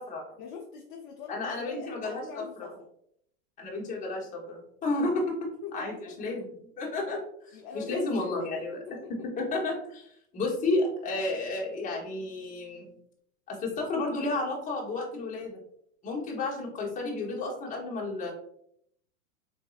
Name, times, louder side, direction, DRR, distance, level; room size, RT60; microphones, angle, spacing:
voice 1, 0.4-2.9 5.6-6.1 7.5-9.1, left 5 dB, 35° left, 0 dB, 0.4 m, -43 dB
voice 2, 1.3-2.7 3.6-5.3 5.7-6.5 6.8-8.8 9.4-12.9 13.5-15.6 16.0-18.3, left 2 dB, 15° left, -2 dB, 0.8 m, -32 dB
3.9 x 2.6 x 2.3 m, 0.70 s
hypercardioid pair, 135°, 45 cm